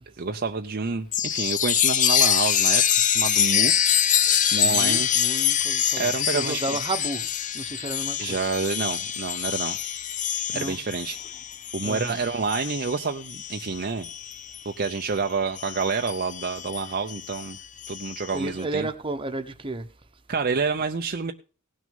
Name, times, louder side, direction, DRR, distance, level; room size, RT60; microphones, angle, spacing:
voice 1, 0.2-3.7 4.5-5.1 6.0-6.8 8.2-9.8 10.5-11.2 11.7-14.1 14.6-17.6 17.9-18.9 20.3-21.3, right 4 dB, 45° right, 0.6 m, -28 dB
Chime, 1.1-15.1 15.6-18.4, left 9 dB, 35° left, 0.6 m, -25 dB
voice 2, 4.6-7.3 7.5-8.4 10.5-10.8 11.8-12.2 18.3-19.9, right 2 dB, 25° right, 1.1 m, -32 dB
17.5 x 6.2 x 5.3 m
head